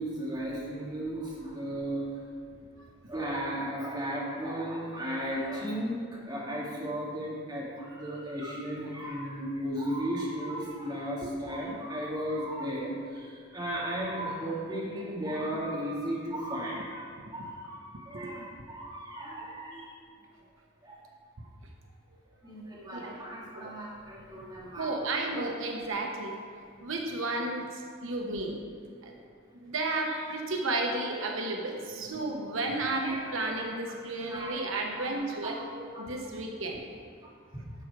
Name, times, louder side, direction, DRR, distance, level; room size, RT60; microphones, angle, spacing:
voice 1, 0.0-2.0 3.1-19.9 20.8-21.0 22.4-24.9 25.3-25.5 31.9-32.3 32.9-33.2 33.5-33.6 34.2-34.6 34.9-35.1 35.4-36.1 37.5-37.6, equal, 20° right, -6 dB, 2.2 m, -35 dB
voice 2, 22.9-23.3 23.6-23.7 24.8-26.3 26.8-28.6 29.0-29.1 29.6-35.6 36.0-36.8, right 2 dB, 85° right, 1 dB, 1.0 m, -33 dB
12.0 x 5.9 x 4.8 m, 2.3 s
head